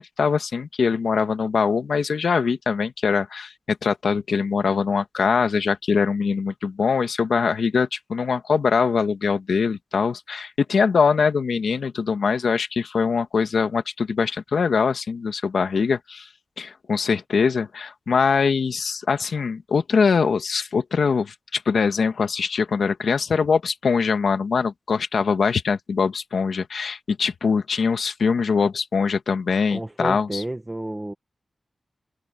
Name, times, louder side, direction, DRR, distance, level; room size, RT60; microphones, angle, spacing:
voice 1, 0.0-16.3 16.6-30.4, left 5 dB, 75° left, 1.7 m, -22 dB
voice 2, 29.7-31.1, right 1 dB, 15° right, 1.7 m, -30 dB
open air
wide cardioid pair, 135°, 0 cm